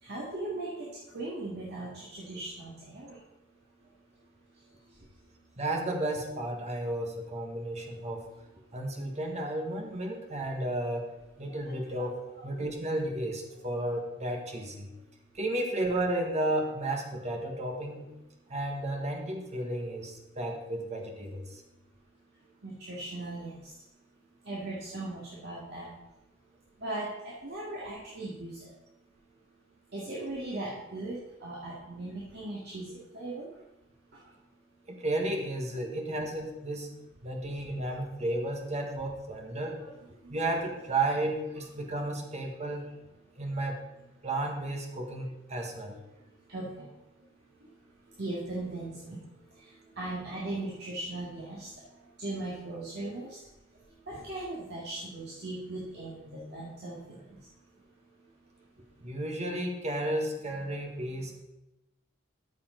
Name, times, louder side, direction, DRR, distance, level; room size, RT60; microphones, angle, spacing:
voice 1, 0.0-3.2 11.5-12.1 12.3-12.4 22.6-23.7 24.4-25.9 26.8-28.7 29.9-33.5 39.8-40.0 40.2-40.4 46.5-46.9 48.2-49.2 49.6-49.7 50.0-51.7 52.2-53.4 54.1-57.2, right 2 dB, 55° right, -7 dB, 2.3 m, -38 dB
voice 2, 5.6-8.3 8.7-11.1 11.4-14.9 15.3-18.1 18.5-21.6 34.9-36.9 37.2-39.8 40.3-42.9 43.4-43.8 44.2-46.0 59.0-61.4, right 1 dB, 35° right, 2 dB, 1.6 m, -33 dB
13.5 x 7.0 x 3.9 m, 0.97 s
head